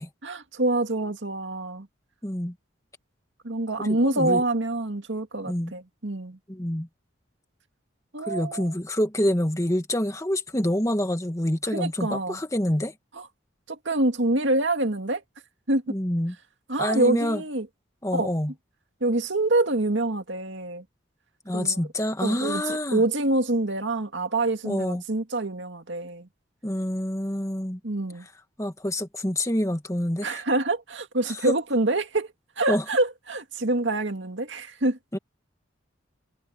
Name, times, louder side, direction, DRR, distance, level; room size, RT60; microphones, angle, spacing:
voice 1, 0.2-1.9 3.4-6.4 8.1-8.7 11.7-12.4 13.2-13.3 13.7-15.2 15.7-15.8 16.7-17.7 18.1-18.3 19.0-20.8 21.5-21.8 22.2-26.3 27.8-28.3 30.2-35.0, right 2 dB, 70° right, 2.2 m, -26 dB
voice 2, 2.2-2.5 4.0-4.4 5.4-5.7 6.5-6.9 8.2-12.9 15.9-16.3 16.8-17.4 18.0-18.5 21.4-23.0 24.6-25.0 26.6-27.8 28.6-30.4 32.7-32.8 35.1-35.2, left 1 dB, 15° left, 1.8 m, -27 dB
head